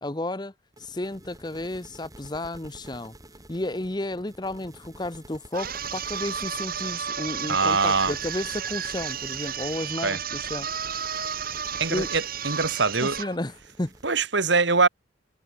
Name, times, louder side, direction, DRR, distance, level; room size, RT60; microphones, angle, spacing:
voice 1, 0.0-0.5 0.8-3.1 3.5-10.7 11.9-12.1 13.0-13.9, left 1 dB, 20° left, 0.9 m, -32 dB
sound 1, 0.7-14.1, right 1 dB, 15° right, 7.3 m, -50 dB
sound 2, 5.5-13.4, right 8 dB, 45° right, 5.2 m, -32 dB
voice 2, 7.5-8.1 10.0-10.2 11.8-13.2 14.0-14.9, right 4 dB, 60° right, 1.8 m, -23 dB
head